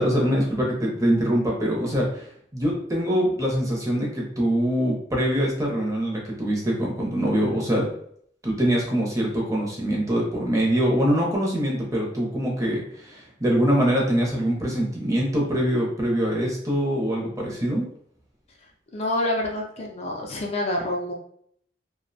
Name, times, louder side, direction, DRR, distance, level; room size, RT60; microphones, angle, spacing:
voice 1, 0.0-7.9 8.4-17.9, equal, 20° right, -2 dB, 0.6 m, -24 dB
voice 2, 18.9-21.1, left 1 dB, 35° left, -1 dB, 0.3 m, -27 dB
2.5 x 2.0 x 2.6 m, 0.65 s
head